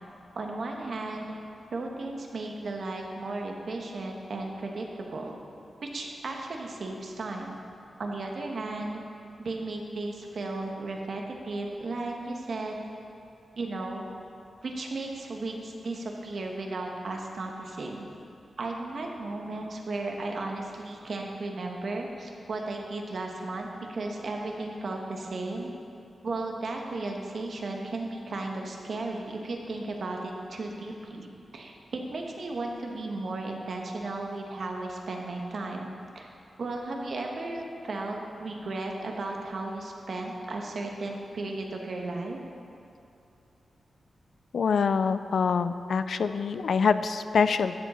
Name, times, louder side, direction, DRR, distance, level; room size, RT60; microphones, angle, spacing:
voice 1, 0.3-1.3 1.7-5.4 5.8-7.6 8.0-9.0 9.4-12.8 13.6-14.0 14.6-18.1 18.6-25.7 26.2-35.9 36.1-36.3 36.6-42.4, right 2 dB, 60° right, 1 dB, 1.2 m, -35 dB
voice 2, 44.5-47.7, left 5 dB, 75° left, 11 dB, 0.4 m, -25 dB
12.5 x 7.2 x 4.3 m, 2.6 s
wide cardioid pair, 105°, 0 cm